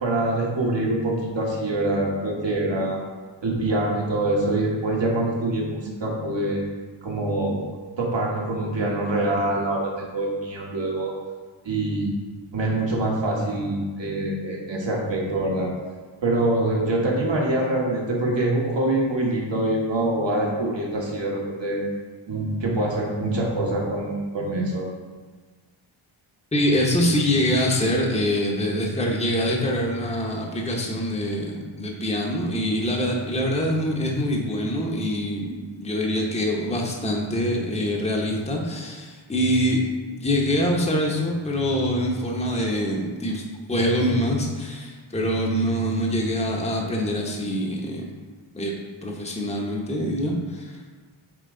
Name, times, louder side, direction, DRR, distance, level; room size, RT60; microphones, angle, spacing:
voice 1, 0.0-3.0 3.4-6.6 7.0-7.6 8.0-11.1 11.6-12.1 12.5-15.7 16.2-21.8 22.3-24.9, right 2 dB, 60° right, -2 dB, 1.6 m, -25 dB
voice 2, 26.5-39.8 40.1-43.4 43.7-48.1 48.5-48.7 49.0-50.8, equal, 15° left, -1 dB, 0.9 m, -24 dB
8.4 x 3.1 x 3.8 m, 1.4 s
wide cardioid pair, 70°, 50 cm